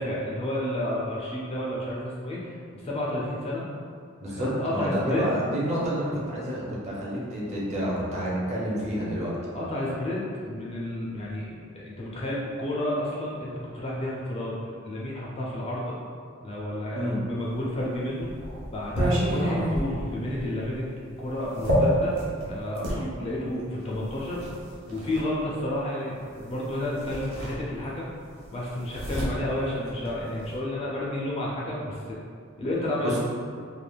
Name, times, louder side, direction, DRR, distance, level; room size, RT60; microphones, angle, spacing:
voice 1, 0.0-3.6 4.3-5.3 9.5-15.9 16.4-18.3 18.7-20.9 21.2-22.1 22.5-24.4 24.9-28.1 28.5-32.2 32.6-33.2, left 1 dB, 25° left, -5 dB, 0.3 m, -31 dB
voice 2, 4.2-9.3 16.9-17.2 33.0-33.2, equal, 30° right, -6 dB, 0.5 m, -29 dB
sound 1, 17.7-23.0 23.9-25.3 26.5-26.6 26.9-28.1 28.3-30.6, equal, 65° right, 0.7 m, -30 dB
3.2 x 2.1 x 2.3 m, 2.2 s
head